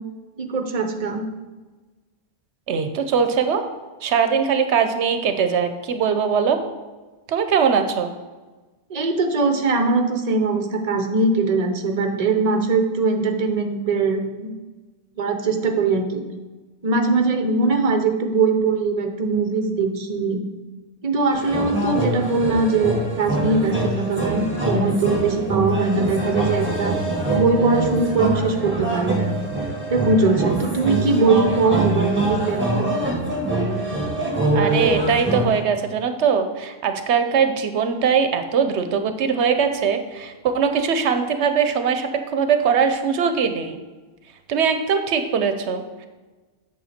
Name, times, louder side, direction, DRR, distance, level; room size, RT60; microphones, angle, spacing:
voice 1, 0.4-1.2 8.9-14.5 15.2-16.2 16.8-20.4 21.0-27.0 27.3-29.4 29.9-32.9, right 3 dB, 40° right, 5 dB, 0.9 m, -21 dB
voice 2, 2.7-3.6 4.0-6.6 7.3-8.1 34.5-43.8 44.5-46.1, right 6 dB, 80° right, 8 dB, 0.9 m, -21 dB
sound 1, 21.3-35.6, right 2 dB, 10° right, 1.7 m, -24 dB
8.5 x 6.5 x 4.3 m, 1.3 s
omnidirectional pair, 1.1 m